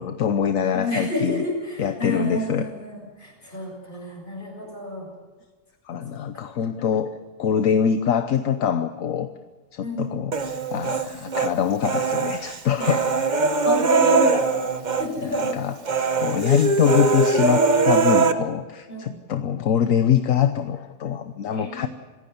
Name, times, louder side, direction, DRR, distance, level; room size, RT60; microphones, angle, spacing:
voice 1, 0.0-1.4 1.8-2.7 5.9-9.3 9.7-10.3 10.7-13.1 15.2-15.8 16.2-21.9, left 8 dB, 70° left, 9 dB, 1.3 m, -24 dB
voice 2, 0.7-5.1 6.3-6.5 9.8-10.2 12.8-13.0 13.4-14.7 15.0-15.6 18.9-19.2 21.5-21.9, left 1 dB, 35° left, 0 dB, 7.4 m, -29 dB
Human voice, 10.3-11.5 11.8-15.1 15.3-15.5 15.9-18.3, right 4 dB, 35° right, 1.1 m, -21 dB
26.5 x 16.0 x 6.9 m, 1.3 s
omnidirectional pair, 1.4 m